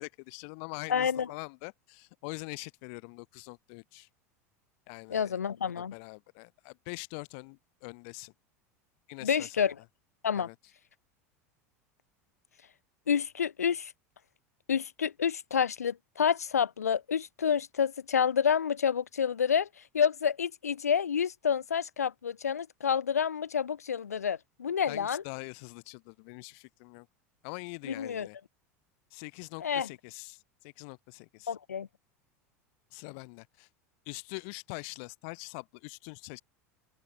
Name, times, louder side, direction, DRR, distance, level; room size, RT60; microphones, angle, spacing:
voice 1, 0.0-4.1 4.9-5.4 5.8-8.3 9.1-9.7 10.4-10.5 24.9-27.1 27.4-28.4 29.1-31.5 32.9-33.7 34.1-36.4, left 37 dB, 60° left, 2.3 m, -44 dB
voice 2, 0.9-1.3 5.1-5.9 9.2-9.7 10.2-10.5 13.1-13.9 14.7-19.7 19.9-25.2 27.8-28.3 29.6-29.9 31.5-31.9, left 7 dB, 85° left, 1.2 m, -29 dB
open air
hypercardioid pair, 85°, 8 cm